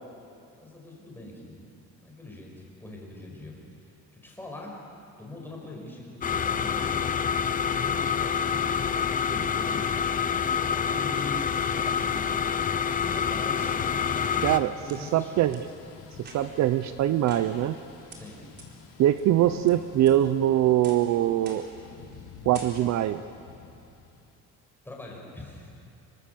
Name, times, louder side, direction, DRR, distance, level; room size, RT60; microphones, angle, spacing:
voice 1, 0.5-1.7 2.0-3.6 4.1-4.7 5.2-8.7 9.2-13.8 14.6-15.5 18.1-18.5 24.8-25.7, left 2 dB, 5° left, -1 dB, 5.7 m, -43 dB
sound 1, 6.2-14.6, left 7 dB, 25° left, 0.8 m, -27 dB
Thunder / Rain, 13.6-24.4, left 5 dB, 80° left, 3.4 m, -48 dB
voice 2, 14.4-15.7 16.2-17.8 19.0-21.7 22.5-23.2, right 12 dB, 55° right, 12 dB, 0.7 m, -23 dB
sound 2, 14.5-15.0 15.5-15.6 16.2-16.7 17.3-17.8 18.1-18.2 18.6-18.7 19.2-19.7 20.1-20.4 20.8-21.1 21.5-21.8 22.1-22.3 22.5-23.1, right 2 dB, 30° right, 4.3 m, -47 dB
26.0 x 23.5 x 7.0 m, 2.5 s
cardioid pair, 145°, 32 cm